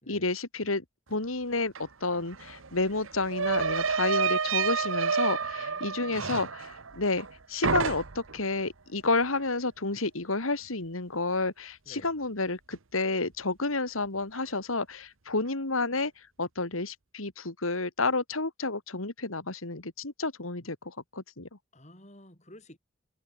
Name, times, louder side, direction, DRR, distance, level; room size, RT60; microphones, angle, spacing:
voice 1, 0.0-16.1 16.4-21.5, left 3 dB, 85° left, 2.8 m, -30 dB
sound 1, 1.7-1.8 2.1-7.3 7.6-8.4, right 5 dB, 80° right, 1.3 m, -29 dB
voice 2, 5.6-6.3 11.9-12.1 21.7-22.8, left 1 dB, 35° left, 6.0 m, -52 dB
head